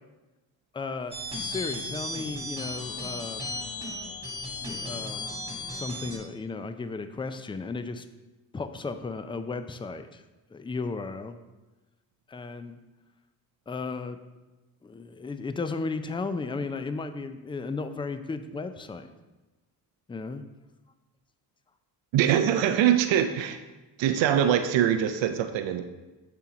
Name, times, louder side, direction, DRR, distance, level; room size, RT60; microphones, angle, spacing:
voice 1, 0.7-3.4 4.6-5.2 5.7-8.1 8.5-10.2 10.5-11.4 12.3-12.8 13.7-14.2 14.8-19.1 20.1-20.4, left 4 dB, 10° left, 10 dB, 0.3 m, -35 dB
sound 1, 1.1-6.2, left 2 dB, 10° right, 1.9 m, -35 dB
voice 2, 22.1-23.6 24.0-25.8, right 10 dB, 85° right, 8 dB, 0.5 m, -23 dB
6.9 x 3.0 x 4.9 m, 1.1 s
cardioid pair, 60°, 44 cm